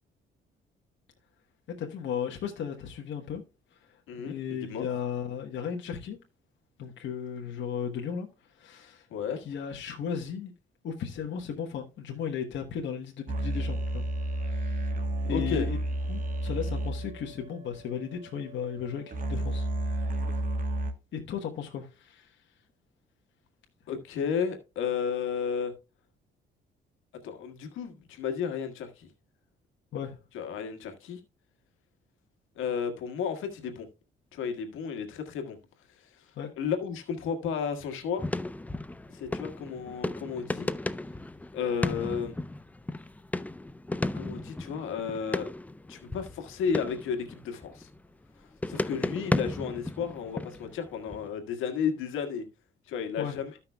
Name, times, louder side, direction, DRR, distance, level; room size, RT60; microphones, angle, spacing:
voice 1, 1.8-3.4 3.7-6.2 6.8-9.1 9.4-10.5 10.8-14.9 15.2-15.8 16.1-20.2 21.1-22.4 29.9-30.2 36.4-36.5 53.2-53.4, left 7 dB, 70° left, 1.2 m, -36 dB
voice 2, 4.1-4.9 9.1-9.4 15.3-15.7 23.9-25.7 27.2-29.1 30.3-31.2 32.5-33.9 34.3-35.6 36.0-38.2 39.1-40.7 41.5-42.3 44.1-45.5 45.9-47.9 48.7-52.4 52.9-53.5, left 6 dB, 90° left, 1.6 m, -33 dB
sound 1, 13.3-20.9, right 1 dB, 45° right, 1.3 m, -32 dB
sound 2, 38.2-48.3 48.6-51.3, left 2 dB, 10° left, 0.4 m, -34 dB
14.0 x 5.7 x 2.2 m
cardioid pair, 90°, 20 cm